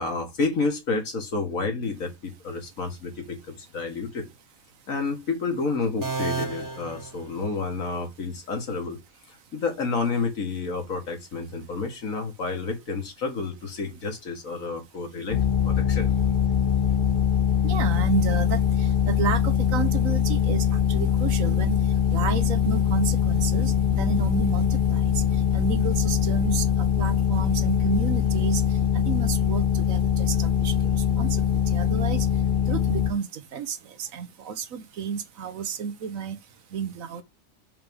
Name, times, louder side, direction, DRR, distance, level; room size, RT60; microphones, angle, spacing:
voice 1, 0.0-4.3 4.9-9.0 9.3-16.2, left 4 dB, 80° left, 2.0 m, -30 dB
sound 1, 6.0-7.9, right 4 dB, 15° right, 1.0 m, -33 dB
sound 2, 15.3-33.1, left 8 dB, 45° left, 0.8 m, -23 dB
voice 2, 17.6-21.8 22.1-25.2 25.5-28.6 28.9-30.7 31.2-31.4 31.7-32.3 32.7-36.4 36.7-37.2, right 7 dB, 80° right, 1.3 m, -31 dB
sound 3, 22.6-27.5, left 2 dB, 60° right, 2.0 m, -48 dB
5.7 x 3.5 x 5.3 m
omnidirectional pair, 1.4 m